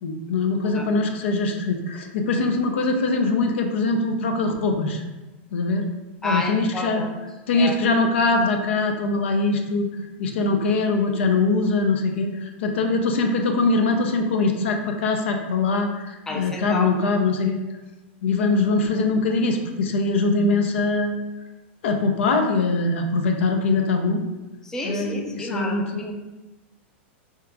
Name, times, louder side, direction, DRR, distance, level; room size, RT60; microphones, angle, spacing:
voice 1, 0.0-5.0 5.5-5.9 6.2-7.0 7.5-9.9 10.2-17.6 18.2-21.2 21.8-24.2 24.8-26.1, left 3 dB, 80° left, 4 dB, 0.5 m, -22 dB
voice 2, 6.2-7.1 7.5-7.7 16.3-16.9 24.6-26.1, left 2 dB, 10° left, 0 dB, 0.3 m, -30 dB
2.9 x 2.3 x 3.4 m, 1.1 s
supercardioid pair, 150°, 6 cm